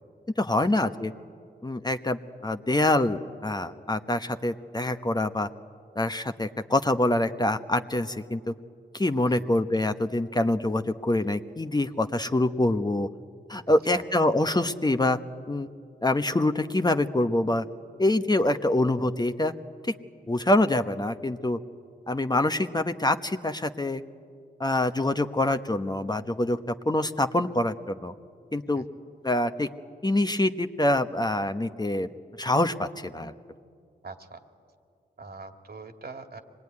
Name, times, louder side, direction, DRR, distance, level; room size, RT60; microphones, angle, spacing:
voice 1, 0.4-1.1 1.6-5.5 6.0-8.5 8.9-13.1 13.5-15.2 15.5-15.7 16.0-17.7 18.0-19.5 19.9-20.0 20.3-21.6 22.1-24.0 24.6-26.6 26.8-28.1 28.5-28.8 29.2-29.7 30.0-32.1 32.4-33.3, left 1 dB, 20° left, 8 dB, 1.0 m, -25 dB
voice 2, 34.0-34.4 35.2-36.4, right 4 dB, 55° right, 5 dB, 2.3 m, -42 dB
24.5 x 20.5 x 9.7 m, 2.3 s
cardioid pair, 50°, 19 cm